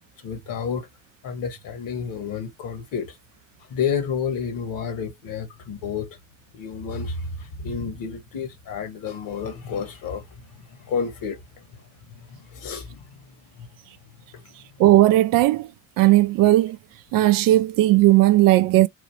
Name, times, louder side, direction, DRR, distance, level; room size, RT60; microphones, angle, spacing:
voice 1, 0.2-0.9 1.2-3.2 3.7-6.2 6.5-10.2 10.5-11.8 12.1-13.2 13.5-13.7 14.3-14.4, left 6 dB, 50° left, 1.4 m, -30 dB
voice 2, 14.8-15.7 16.0-16.8 17.1-18.9, right 16 dB, 50° right, 0.5 m, -16 dB
4.1 x 2.4 x 3.2 m
hypercardioid pair, 55°, 43 cm